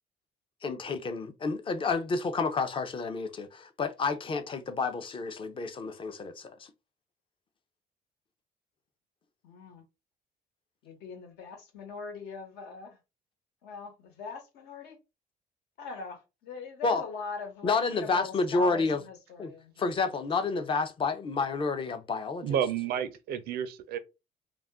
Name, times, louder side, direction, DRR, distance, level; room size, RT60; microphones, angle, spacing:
voice 1, 0.6-6.7 16.8-17.0 17.6-19.0 19.4-19.5 19.8-22.6, left 4 dB, 30° left, 0.5 m, -30 dB
voice 2, 9.4-9.8 10.8-13.0 13.6-15.0 15.8-19.7, left 5 dB, 80° left, 1.1 m, -41 dB
voice 3, 22.4-24.0, right 9 dB, 70° right, 0.4 m, -30 dB
2.4 x 2.1 x 3.5 m
cardioid pair, 110°, 17 cm